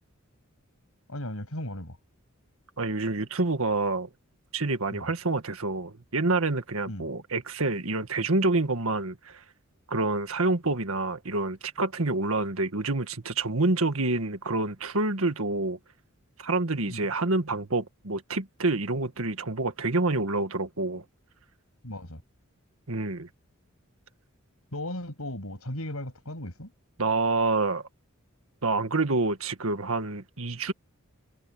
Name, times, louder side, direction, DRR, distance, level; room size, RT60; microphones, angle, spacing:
voice 1, 1.1-2.0 4.9-5.1 6.9-7.0 16.9-17.1 21.8-22.2 24.7-26.7, left 1 dB, 75° left, 7.5 m, -36 dB
voice 2, 2.8-4.1 4.5-9.4 9.9-15.8 16.4-21.0 22.9-23.3 27.0-27.8 28.6-30.7, right 3 dB, 75° right, 1.8 m, -27 dB
head